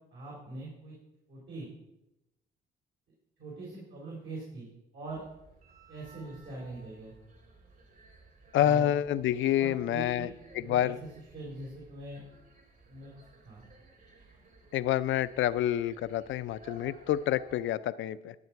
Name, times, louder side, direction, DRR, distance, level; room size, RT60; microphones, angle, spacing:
voice 1, 0.1-0.9 1.3-1.7 3.4-5.2 5.9-7.2 8.6-8.9 9.6-10.3 10.5-12.2 12.9-13.1 13.5-13.6, right 2 dB, 70° right, -4 dB, 3.8 m, -42 dB
sound 1, 5.1-17.6, right 1 dB, 50° right, 3.2 m, -57 dB
voice 2, 8.5-10.3 10.6-11.0 14.7-18.3, left 12 dB, 75° left, 14 dB, 0.5 m, -28 dB
12.0 x 7.5 x 4.6 m, 0.92 s
cardioid pair, 90°, 20 cm